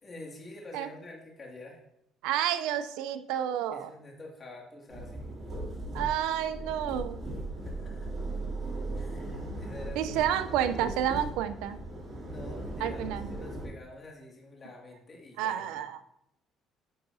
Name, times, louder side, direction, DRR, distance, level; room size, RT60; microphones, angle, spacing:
voice 1, 0.0-1.8 3.7-5.2 7.6-8.1 8.9-10.3 12.2-16.1, left 2 dB, 35° left, -1 dB, 2.2 m, -47 dB
voice 2, 2.2-3.9 5.9-7.2 10.0-11.8 12.8-13.3 15.4-16.0, right 10 dB, 90° right, 11 dB, 0.5 m, -30 dB
sound 1, 4.9-13.7, right 2 dB, 30° right, 2.9 m, -38 dB
10.0 x 5.8 x 2.7 m, 0.79 s
cardioid pair, 110°, 0 cm